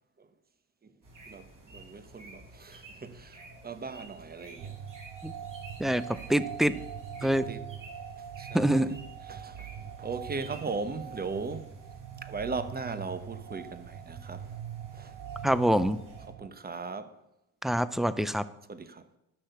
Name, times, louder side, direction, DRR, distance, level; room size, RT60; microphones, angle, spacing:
sound 1, 1.0-16.3, right 2 dB, 50° right, 5.4 m, -52 dB
voice 1, 1.3-4.8 7.2-7.7 8.2-9.0 9.2-11.8 12.2-14.6 14.9-15.5 16.3-17.2 18.7-19.1, right 4 dB, 25° right, 1.0 m, -39 dB
sound 2, 4.6-16.5, right 9 dB, 70° right, 0.8 m, -43 dB
voice 2, 5.8-6.8 7.2-7.5 8.5-9.0 15.4-16.0 17.6-18.4, right 1 dB, ahead, 0.4 m, -25 dB
11.5 x 6.5 x 6.9 m
cardioid pair, 100°, 39 cm